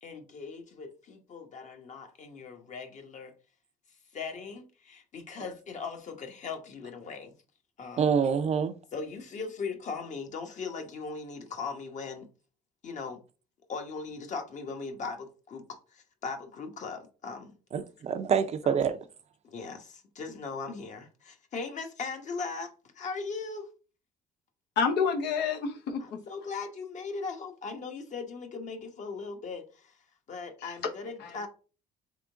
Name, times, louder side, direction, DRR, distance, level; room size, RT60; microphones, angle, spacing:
voice 1, 0.0-3.3 4.1-7.3 7.8-8.1 8.9-12.3 12.8-13.2 13.7-17.6 18.6-18.7 19.4-22.7 22.9-23.7 26.0-30.0 30.3-31.5, left 4 dB, 45° left, 1.1 m, -39 dB
voice 2, 8.0-8.7 17.7-19.0, right 7 dB, 40° right, 0.5 m, -26 dB
voice 3, 24.8-26.2 30.6-30.7 31.2-31.5, left 5 dB, 80° left, 0.9 m, -29 dB
3.7 x 3.5 x 3.4 m
cardioid pair, 110°, 17 cm